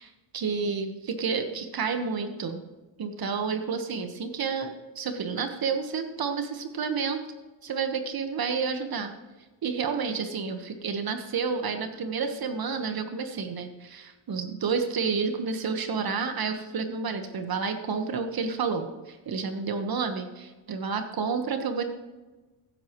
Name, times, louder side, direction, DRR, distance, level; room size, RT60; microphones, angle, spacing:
voice 1, 0.0-2.6 3.0-7.2 7.6-9.1 9.6-21.8, right 5 dB, 45° right, 7 dB, 1.4 m, -30 dB
15.5 x 8.7 x 3.1 m, 1.2 s
supercardioid pair, 80°, 49 cm